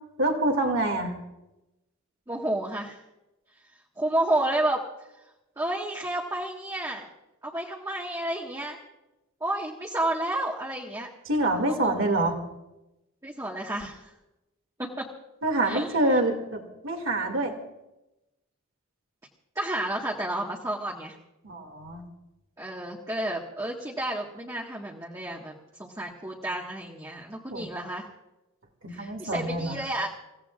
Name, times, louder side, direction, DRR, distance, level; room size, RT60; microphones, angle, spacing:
voice 1, 0.2-1.2 11.3-12.3 15.4-17.5 21.4-22.0 27.5-27.7 28.8-29.8, right 1 dB, 65° right, 4 dB, 2.4 m, -26 dB
voice 2, 2.3-3.0 4.0-4.8 5.6-7.1 7.4-8.8 9.4-11.1 11.7-12.1 13.2-14.1 14.8-15.1 15.6-16.0 19.5-21.1 22.6-28.1 28.9-30.1, right 1 dB, 15° right, -3 dB, 1.6 m, -31 dB
29.0 x 16.5 x 2.5 m, 0.95 s
head